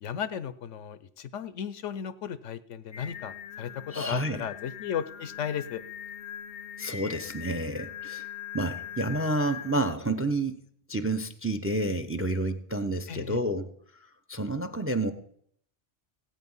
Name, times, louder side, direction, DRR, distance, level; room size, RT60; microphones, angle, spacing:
voice 1, 0.0-5.8 13.1-13.4, left 8 dB, 80° left, 14 dB, 1.1 m, -35 dB
Singing, 2.9-9.9, left 9 dB, 60° left, 0.8 m, -41 dB
voice 2, 3.9-4.4 6.8-8.3 8.5-10.6 10.9-13.7 14.3-15.1, right 1 dB, 15° right, 10 dB, 0.5 m, -29 dB
16.5 x 8.5 x 5.5 m, 0.66 s
omnidirectional pair, 1.2 m